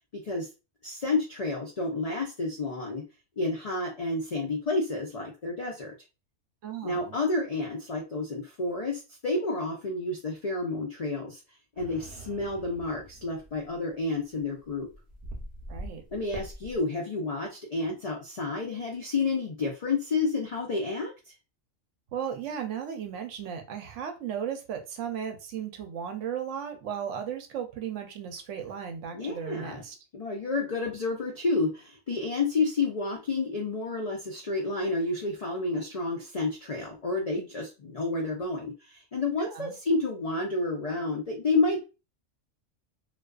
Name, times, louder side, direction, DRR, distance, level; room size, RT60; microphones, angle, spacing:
voice 1, 0.1-0.5 0.8-3.0 3.4-5.9 6.8-11.4 11.8-14.9 16.1-21.1 29.1-29.8 30.1-41.8, left 3 dB, 70° left, 0 dB, 0.3 m, -30 dB
voice 2, 6.6-7.2 15.7-16.0 22.1-29.9 39.4-39.7, right 8 dB, 75° right, 5 dB, 0.9 m, -35 dB
sound 1, 11.7-16.8, right 1 dB, 45° right, 0.6 m, -44 dB
2.3 x 2.3 x 2.2 m, 0.29 s
omnidirectional pair, 1.3 m